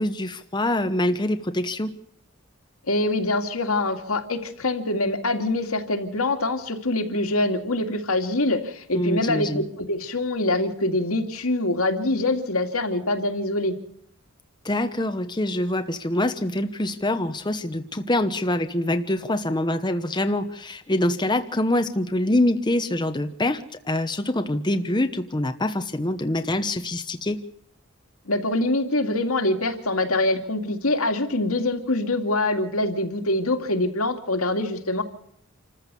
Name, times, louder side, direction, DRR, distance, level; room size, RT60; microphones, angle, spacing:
voice 1, 0.0-1.9 8.9-9.6 14.6-27.4, left 1 dB, 20° left, 8 dB, 1.0 m, -25 dB
voice 2, 2.9-13.7 28.3-35.0, left 2 dB, 80° left, 5 dB, 2.5 m, -24 dB
27.5 x 14.5 x 7.0 m, 0.73 s
head